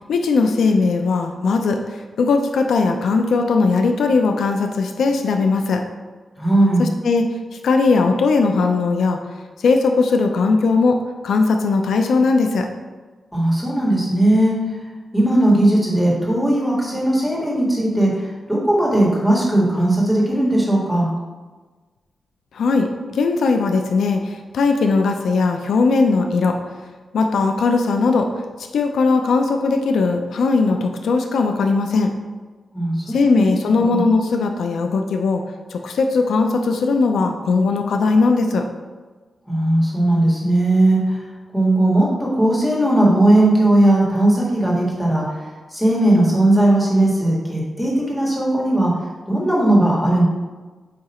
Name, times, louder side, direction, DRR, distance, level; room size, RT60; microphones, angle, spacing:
voice 1, 0.1-5.8 6.8-7.4 7.6-9.2 9.6-11.0 11.2-12.7 22.5-26.6 27.1-28.3 28.6-32.1 33.1-35.4 35.7-38.7, left 4 dB, 90° left, 4 dB, 0.5 m, -18 dB
voice 2, 6.4-6.8 13.3-14.6 15.1-21.1 32.7-33.4 33.8-34.0 39.5-41.2 41.5-45.2 45.7-48.9 49.3-50.2, right 1 dB, 5° left, -4 dB, 1.8 m, -17 dB
8.6 x 2.9 x 4.3 m, 1.3 s
wide cardioid pair, 120°, 0 cm